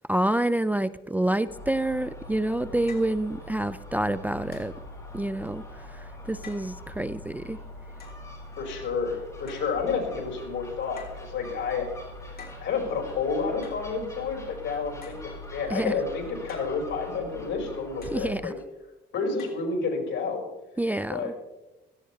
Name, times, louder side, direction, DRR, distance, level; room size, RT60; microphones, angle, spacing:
voice 1, 0.1-4.7 5.1-7.6 15.7-15.9 18.1-18.5 20.8-21.3, right 1 dB, 10° right, 14 dB, 0.4 m, -28 dB
Gull seagull, 1.5-18.3, left 1 dB, 15° left, 5.0 m, -43 dB
sound 1, 2.0-2.1 2.9-3.2 4.5-4.8 6.4-6.7 8.0-8.2 9.5-9.8 11.0-11.3 12.4-12.7 13.6-13.9 15.0-15.3 16.5-16.8 18.0-18.2 19.4-19.7, left 4 dB, 50° left, 3.5 m, -47 dB
voice 2, 8.6-11.9 12.6-18.5 19.1-20.5 21.1-21.3, left 4 dB, 70° left, 1 dB, 4.7 m, -30 dB
17.0 x 15.0 x 3.3 m, 1.0 s
cardioid pair, 90°, 20 cm